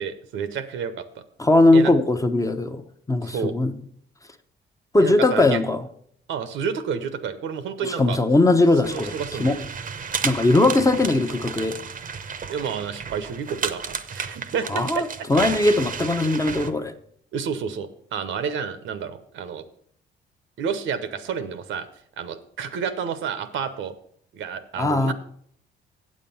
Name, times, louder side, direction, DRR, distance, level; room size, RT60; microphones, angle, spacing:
voice 1, 0.0-1.2 1.7-1.9 3.2-3.5 5.0-5.6 6.3-8.2 8.8-9.6 12.5-15.0 17.3-19.6 20.6-21.9 22.2-23.9 24.3-25.1, right 7 dB, 75° right, 11 dB, 0.9 m, -30 dB
voice 2, 1.4-2.8 3.1-3.7 4.9-5.8 7.8-9.6 10.2-11.8 14.7-16.9 24.8-25.1, left 2 dB, 15° left, 7 dB, 0.8 m, -19 dB
sound 1, 8.8-16.7, right 6 dB, 45° right, 0.8 m, -33 dB
8.4 x 7.5 x 5.5 m, 0.65 s
cardioid pair, 90°, 20 cm